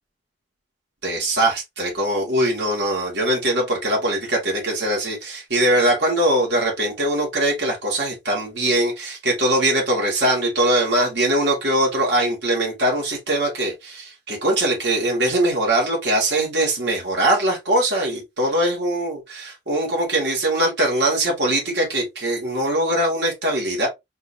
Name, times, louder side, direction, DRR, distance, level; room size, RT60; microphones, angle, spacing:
voice 1, 1.0-23.9, right 1 dB, 70° right, 2.6 m, -21 dB
4.5 x 4.1 x 2.8 m
head